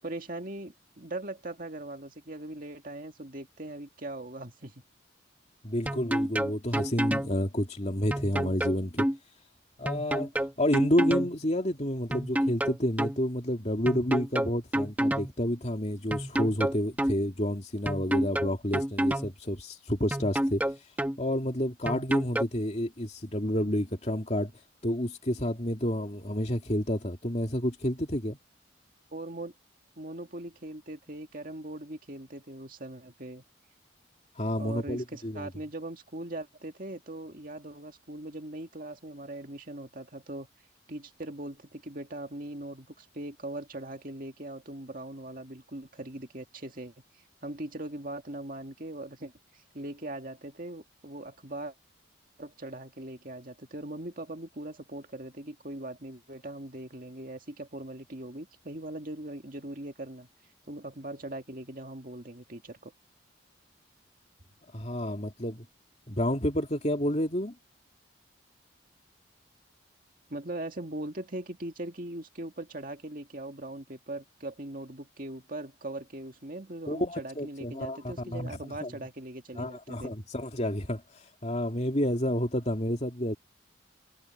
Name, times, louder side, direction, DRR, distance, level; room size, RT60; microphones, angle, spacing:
voice 1, 0.0-4.8 29.1-29.5 30.0-33.4 34.6-40.5 40.9-46.9 47.4-51.7 52.4-60.3 60.7-62.9 70.3-80.2, right 1 dB, 45° right, 2.2 m, -40 dB
voice 2, 5.6-9.1 9.8-10.3 10.6-20.6 21.2-24.5 24.8-28.4 34.4-35.5 64.7-65.6 66.1-67.5 76.9-78.5 78.8-78.9 79.6-81.0 81.4-83.4, equal, 35° left, 2.8 m, -29 dB
sound 1, 5.9-7.3 8.1-9.2 9.9-11.3 12.1-13.2 13.9-15.3 16.1-17.2 17.9-19.3 20.1-21.2 21.9-22.4, right 1 dB, 10° right, 1.1 m, -28 dB
head